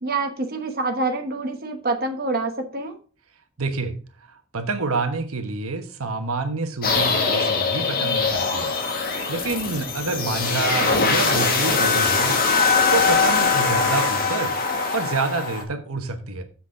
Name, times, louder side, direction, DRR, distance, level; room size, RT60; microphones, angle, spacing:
voice 1, 0.0-3.0, right 3 dB, 45° right, 4 dB, 1.1 m, -26 dB
voice 2, 3.6-8.8 9.3-12.4 12.9-14.5 14.9-16.4, right 3 dB, 85° right, 7 dB, 1.2 m, -27 dB
sound 1, 6.8-15.6, left 4 dB, 45° left, 1.8 m, -22 dB
7.2 x 6.4 x 4.8 m, 0.38 s
head